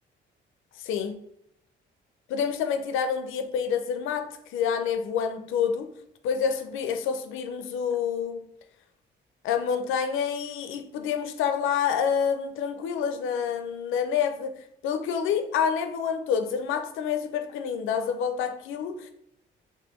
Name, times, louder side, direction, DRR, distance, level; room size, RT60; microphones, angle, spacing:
voice 1, 0.8-1.2 2.3-5.9 6.2-8.4 9.4-19.1, left 7 dB, 85° left, 0.5 m, -28 dB
3.4 x 2.6 x 3.0 m
cardioid pair, 90°, 20 cm